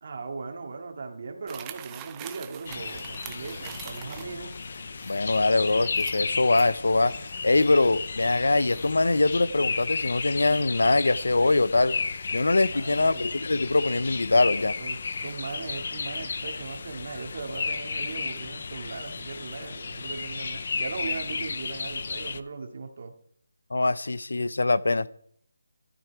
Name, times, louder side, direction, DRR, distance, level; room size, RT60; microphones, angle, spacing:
voice 1, 0.0-4.5 12.7-13.4 14.8-23.1, right 4 dB, 40° right, 2.2 m, -38 dB
sound 1, 1.5-9.1, right 11 dB, 10° right, 0.6 m, -47 dB
sound 2, 2.7-22.4, left 4 dB, 40° left, 0.6 m, -34 dB
voice 2, 5.0-7.1 7.4-11.9 12.3-14.7 23.7-25.1, left 2 dB, 85° left, 0.7 m, -23 dB
13.5 x 13.0 x 4.7 m
figure-of-eight pair, 175°, 0 cm